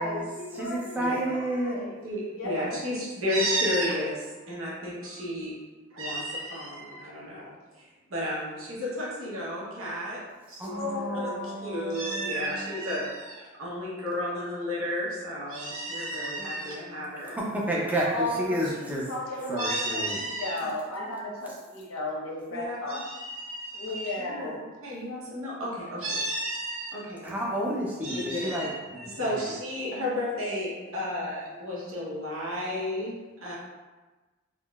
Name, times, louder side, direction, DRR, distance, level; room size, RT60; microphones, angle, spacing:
voice 1, 0.0-1.0 1.2-1.4 1.6-1.9 2.4-2.8 10.7-11.6 18.1-23.1 23.7-24.6, left 1 dB, 85° left, -4 dB, 0.8 m, -34 dB
voice 2, 0.5-1.9 10.6-12.9 17.2-19.1 19.5-20.2 27.2-29.4, right 1 dB, 10° right, -4 dB, 0.4 m, -31 dB
voice 3, 2.0-5.6 5.9-10.2 10.5-17.4 19.6-20.6 22.5-24.5 24.8-27.3 28.0-33.5, equal, 70° right, -6 dB, 0.9 m, -32 dB
3.6 x 2.0 x 2.3 m, 1.2 s
head